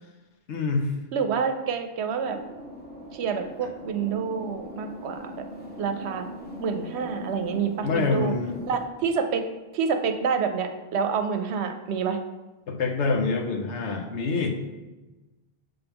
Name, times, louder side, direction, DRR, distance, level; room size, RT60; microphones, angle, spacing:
voice 1, 0.5-0.9 7.8-8.6 12.7-14.5, left 4 dB, 85° left, 3 dB, 1.1 m, -26 dB
voice 2, 1.1-2.4 3.1-5.5 5.8-6.3 6.6-8.3 8.7-9.5 9.7-12.2, right 6 dB, 75° right, 7 dB, 0.8 m, -28 dB
sound 1, 2.2-8.8, equal, 10° left, 1.0 m, -41 dB
6.9 x 3.9 x 3.5 m, 1.1 s
omnidirectional pair, 1.1 m